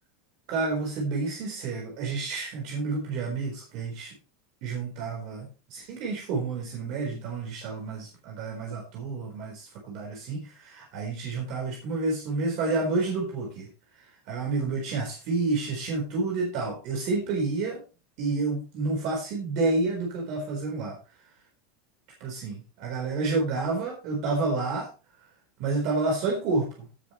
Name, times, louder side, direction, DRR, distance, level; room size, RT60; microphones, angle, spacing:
voice 1, 0.5-4.1 4.6-13.7 14.0-17.8 18.2-21.0 22.2-24.9 25.6-26.9, right 3 dB, 45° right, 0 dB, 4.2 m, -29 dB
17.0 x 7.4 x 3.2 m, 0.32 s
supercardioid pair, 170°, 0 cm